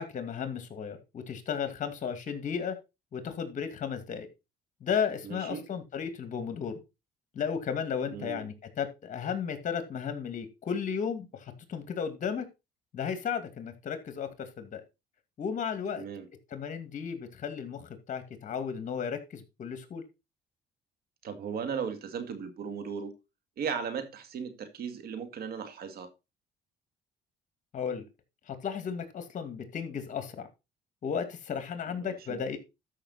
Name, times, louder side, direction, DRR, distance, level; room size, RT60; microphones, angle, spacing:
voice 1, 0.0-2.8 3.1-4.3 4.8-6.7 7.3-12.5 12.9-14.8 15.4-16.0 16.5-20.0 27.7-28.0 28.5-30.3 31.0-32.6, left 7 dB, 50° left, 2.4 m, -34 dB
voice 2, 5.2-5.7 8.1-8.5 15.9-16.3 21.2-23.1 23.6-26.1 32.0-32.4, right 6 dB, 65° right, 2.2 m, -37 dB
13.0 x 5.9 x 4.2 m
cardioid pair, 110°, 17 cm